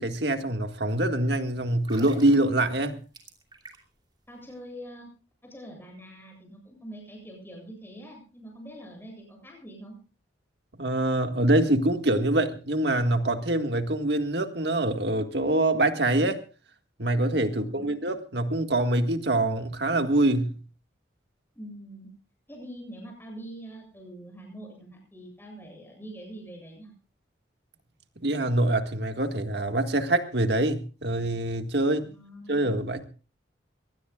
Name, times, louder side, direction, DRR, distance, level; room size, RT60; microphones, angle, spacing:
voice 1, 0.0-2.9 10.8-16.4 17.0-20.6 28.2-32.1 32.5-33.0, right 1 dB, 60° right, 1.8 m, -25 dB
sound 1, 1.7-4.1 4.3-4.5, right 3 dB, 25° right, 3.0 m, -48 dB
voice 2, 4.3-5.1 5.4-9.9 17.5-18.0 21.5-22.1 22.5-26.9 31.9-32.6, right 1 dB, 10° left, 7.8 m, -44 dB
24.0 x 18.5 x 2.4 m
head